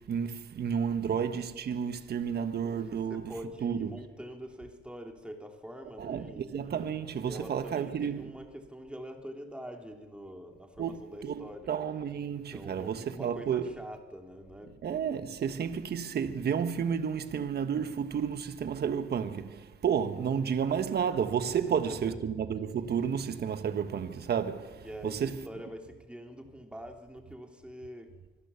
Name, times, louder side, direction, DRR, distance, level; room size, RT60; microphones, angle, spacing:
voice 1, 0.0-3.3 3.6-3.9 6.0-8.3 10.8-13.7 14.8-25.5, right 7 dB, 55° right, 1.4 m, -31 dB
voice 2, 2.6-6.9 7.2-11.7 12.3-14.8 15.0-15.1 21.4-22.2 24.8-28.2, equal, 5° right, 3.2 m, -45 dB
25.5 x 16.5 x 7.1 m
cardioid pair, 90°, 20 cm